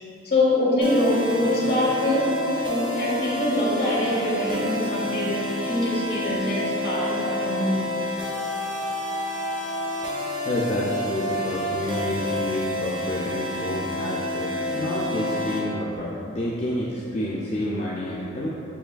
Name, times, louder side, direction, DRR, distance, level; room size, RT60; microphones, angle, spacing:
voice 1, 0.2-2.4 2.7-8.0, left 1 dB, 60° left, -5 dB, 0.9 m, -24 dB
sound 1, 0.8-15.6, left 1 dB, 25° right, 0.5 m, -29 dB
voice 2, 10.5-18.5, left 1 dB, 40° left, -6 dB, 0.3 m, -29 dB
6.9 x 2.4 x 2.2 m, 2.7 s
head